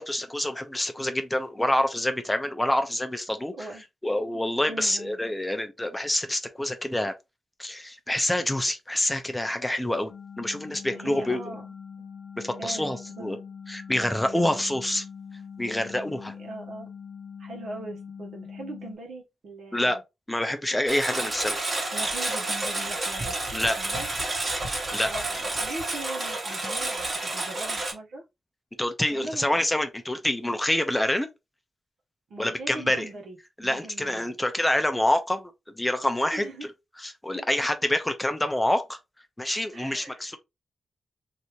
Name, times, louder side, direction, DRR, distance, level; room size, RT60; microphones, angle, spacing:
voice 1, 0.0-3.7 4.0-7.1 7.6-11.4 12.4-13.4 13.7-15.1 15.6-16.3 19.7-20.0 20.3-21.7 23.5-23.8 24.9-25.1 28.8-31.3 32.4-33.1 33.6-36.7 37.0-39.0 39.4-40.4, left 1 dB, 10° left, 0.5 m, -27 dB
voice 2, 4.7-5.2 10.9-11.7 12.6-13.4 14.3-14.4 16.4-16.9 17.4-20.0 21.1-21.3 21.9-23.4 23.8-24.1 25.0-28.2 29.1-29.6 32.3-33.4 33.6-34.3 36.3-36.7 37.3-37.4 39.7-40.4, right 2 dB, 85° right, 1.2 m, -40 dB
sound 1, 10.1-19.0, left 6 dB, 90° left, 0.6 m, -43 dB
Engine, 20.9-27.9, right 2 dB, 40° right, 1.2 m, -30 dB
3.4 x 2.7 x 3.0 m
wide cardioid pair, 135°, 0 cm